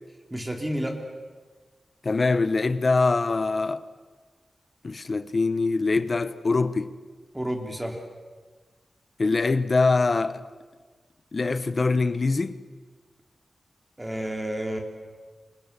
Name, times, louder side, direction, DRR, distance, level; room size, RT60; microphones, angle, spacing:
voice 1, 0.3-1.0 7.3-8.0 14.0-14.8, equal, 10° right, 3.3 m, -30 dB
voice 2, 2.0-3.8 4.8-6.9 9.2-10.4 11.3-12.6, left 3 dB, 40° left, 1.1 m, -23 dB
29.5 x 27.0 x 6.9 m
wide cardioid pair, 155°, 0 cm